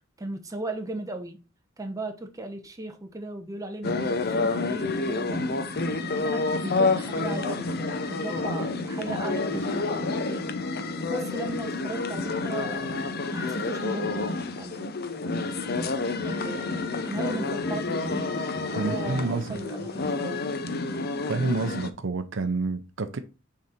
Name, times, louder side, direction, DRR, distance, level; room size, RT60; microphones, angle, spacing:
voice 1, 0.2-1.4 1.8-5.7 6.2-10.5 11.1-14.3 14.6-15.0 16.2-18.3 18.7-20.4, right 2 dB, 15° right, 0.8 m, -37 dB
sound 1, 3.8-21.9, left 3 dB, 50° left, 0.6 m, -29 dB
voice 2, 18.7-19.6 21.3-23.2, right 3 dB, 65° right, 0.6 m, -28 dB
6.3 x 3.9 x 4.3 m
head